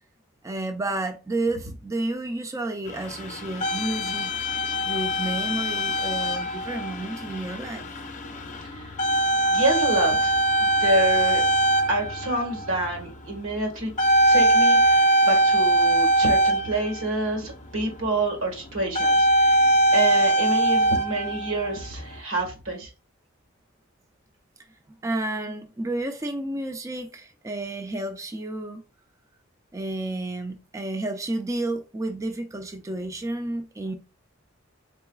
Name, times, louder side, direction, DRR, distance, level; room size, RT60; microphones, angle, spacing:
voice 1, 0.4-4.3 4.8-7.8 25.0-28.8 29.7-33.9, right 2 dB, 15° right, 0.4 m, -31 dB
sound 1, 2.9-17.4 18.8-22.2, right 1 dB, 40° left, 0.5 m, -22 dB
voice 2, 8.6-8.9 9.5-11.4 11.9-13.9 14.3-22.9, right 2 dB, 80° right, 1.5 m, -27 dB
3.9 x 3.8 x 2.3 m
head